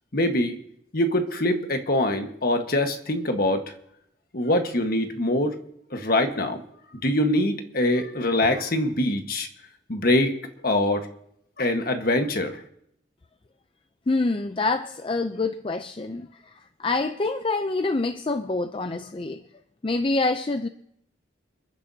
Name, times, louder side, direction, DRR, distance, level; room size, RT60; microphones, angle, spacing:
voice 1, 0.1-0.6 0.9-3.7 4.3-5.6 5.9-6.6 6.9-9.5 9.9-10.3 10.6-11.1 11.6-12.6, left 1 dB, 50° left, 1.4 m, -23 dB
voice 2, 14.1-19.4 19.8-20.7, left 3 dB, 30° left, 0.4 m, -26 dB
29.0 x 10.0 x 2.8 m
head